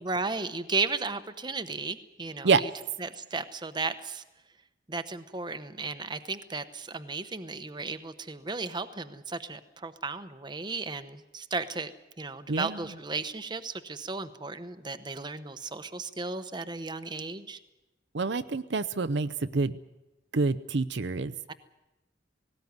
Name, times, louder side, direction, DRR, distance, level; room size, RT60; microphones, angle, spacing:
voice 1, 0.0-2.7 3.0-4.2 4.9-11.9 12.2-17.6 21.5-21.6, right 3 dB, 25° right, 10 dB, 0.9 m, -35 dB
voice 2, 18.1-19.7 20.3-21.3, right 4 dB, 65° right, 11 dB, 0.7 m, -27 dB
18.5 x 17.5 x 9.5 m, 1.0 s
head